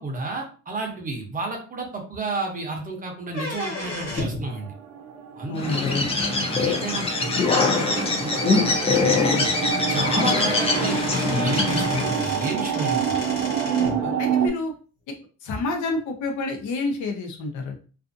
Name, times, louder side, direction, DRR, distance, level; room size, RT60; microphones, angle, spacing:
voice 1, 0.0-4.7 5.4-6.0 6.5-9.5 9.9-13.2, right 3 dB, 25° right, 1 dB, 0.7 m, -32 dB
sound 1, 3.3-4.5 6.2-6.3 7.2-7.3 7.8-7.9 8.2-8.3 9.6-9.7 10.0-14.0, left 2 dB, 45° left, 1.3 m, -33 dB
sound 2, 4.5-14.5, right 7 dB, 75° right, 0.6 m, -28 dB
voice 2, 5.5-6.1 13.7-14.7 15.4-17.8, left 3 dB, 70° left, 3 dB, 0.8 m, -28 dB
Bird, 5.6-12.2, left 3 dB, 20° left, 0.5 m, -23 dB
2.5 x 2.4 x 2.5 m, 0.37 s
cardioid pair, 145°, 31 cm